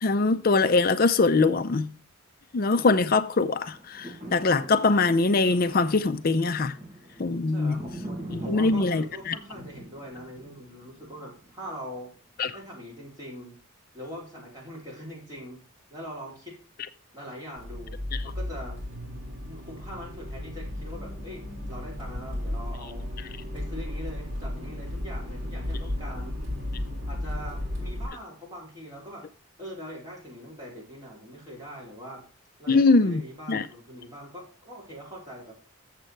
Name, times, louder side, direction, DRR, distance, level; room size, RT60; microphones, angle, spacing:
voice 1, 0.0-1.9 2.5-6.7 7.2-7.8 8.3-9.3 12.4-12.5 32.7-33.2 33.5-33.6, left 3 dB, 40° left, 0.5 m, -22 dB
sound 1, 3.6-11.9 12.4-12.5, right 1 dB, 35° right, 4.1 m, -43 dB
voice 2, 7.5-12.1 12.5-13.6 13.9-15.6 15.9-16.6 17.1-18.8 19.4-23.0 23.5-26.4 27.1-29.3 29.6-32.2 32.6-35.5, equal, 15° right, 3.9 m, -42 dB
Accelerating revving vroom, 17.6-28.1, left 1 dB, 55° right, 3.2 m, -34 dB
7.5 x 6.6 x 4.4 m
head